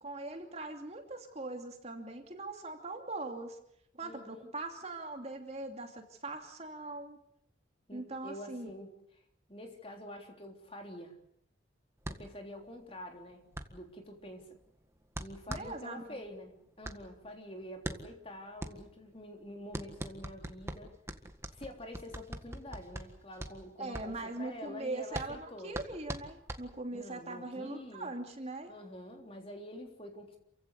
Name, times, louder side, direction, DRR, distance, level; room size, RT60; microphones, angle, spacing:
voice 1, 0.0-3.6 3.9-7.2 7.9-8.7 15.5-16.2 23.8-28.7, right 2 dB, 35° right, 4 dB, 2.7 m, -41 dB
voice 2, 4.0-4.5 7.9-8.9 9.5-11.2 12.1-14.6 15.2-20.9 21.5-25.8 26.9-28.2 28.7-30.4, left 1 dB, 30° left, 3 dB, 3.6 m, -47 dB
sound 1, 12.0-27.1, right 1 dB, 15° right, 1.7 m, -44 dB
28.5 x 16.0 x 8.3 m, 0.73 s
head